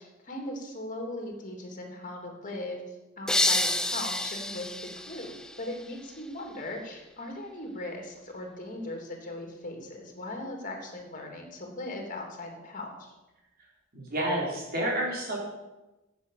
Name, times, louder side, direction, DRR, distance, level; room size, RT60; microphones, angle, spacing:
voice 1, 0.0-13.1, left 1 dB, 40° left, 2 dB, 3.0 m, -39 dB
sound 1, 3.3-6.1, left 1 dB, 5° left, 0.6 m, -29 dB
voice 2, 13.9-15.4, right 1 dB, 45° right, -2 dB, 4.2 m, -29 dB
10.5 x 8.5 x 8.4 m, 1.0 s
head